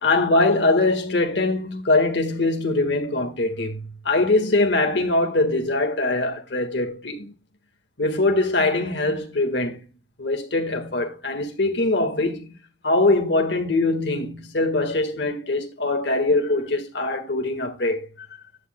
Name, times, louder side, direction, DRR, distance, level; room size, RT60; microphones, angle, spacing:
voice 1, 0.0-7.3 8.0-9.8 10.2-12.5 12.8-18.3, left 2 dB, 65° left, 1.6 m, -22 dB
14.5 x 9.6 x 2.2 m
head